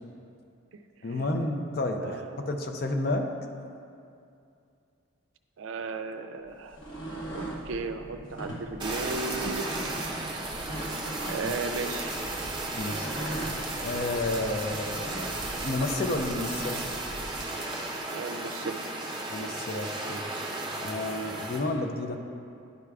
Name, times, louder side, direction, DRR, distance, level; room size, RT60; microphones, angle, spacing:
voice 1, 1.0-3.3 11.4-11.6 12.8-13.1 13.8-15.4 15.6-16.8 19.3-20.3 20.8-22.2, left 2 dB, 45° left, 4 dB, 0.5 m, -31 dB
voice 2, 2.0-2.5 5.6-6.8 7.3-9.7 11.3-12.1 18.1-18.8, right 4 dB, 75° right, 7 dB, 0.4 m, -35 dB
sound 1, 6.4-17.4, equal, 15° left, 1.2 m, -45 dB
sound 2, 6.7-7.6 8.3-8.6 9.5-9.9 10.6-11.6 12.8-13.5 14.7-15.4, right 1 dB, 65° left, 1.3 m, -38 dB
Fire, 8.8-21.6, right 2 dB, 20° right, 0.6 m, -34 dB
10.5 x 4.7 x 2.3 m, 2.5 s
head